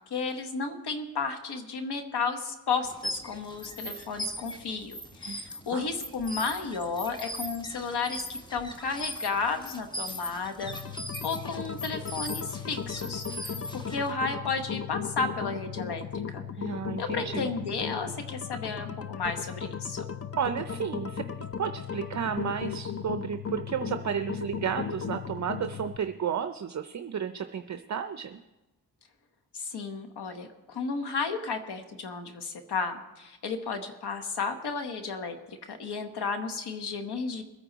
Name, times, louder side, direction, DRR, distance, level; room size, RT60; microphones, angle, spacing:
voice 1, 0.1-16.0 16.3-16.4 17.0-20.0 29.5-37.4, left 4 dB, 80° left, 7 dB, 1.3 m, -33 dB
sound 1, 2.8-14.1, equal, 10° left, 1.2 m, -39 dB
sound 2, 10.6-26.0, left 7 dB, 35° left, 0.7 m, -36 dB
voice 2, 16.6-17.5 20.4-21.2 21.6-28.4, right 8 dB, 45° right, 8 dB, 0.6 m, -32 dB
22.0 x 9.3 x 4.0 m, 1.0 s
cardioid pair, 95°, 39 cm